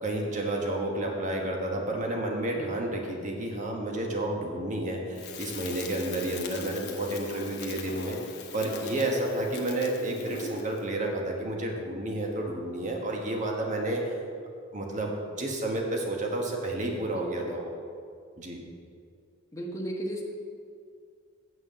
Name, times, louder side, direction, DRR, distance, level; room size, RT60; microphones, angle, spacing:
voice 1, 0.0-8.2 8.5-14.1 14.7-17.7 18.4-18.6, right 1 dB, 40° right, 1 dB, 1.4 m, -31 dB
Crackle, 5.1-10.8, left 4 dB, 55° left, 1.0 m, -41 dB
voice 2, 17.1-17.5 19.5-20.2, right 1 dB, 15° left, -1 dB, 1.2 m, -35 dB
7.4 x 6.3 x 7.6 m, 2.3 s
head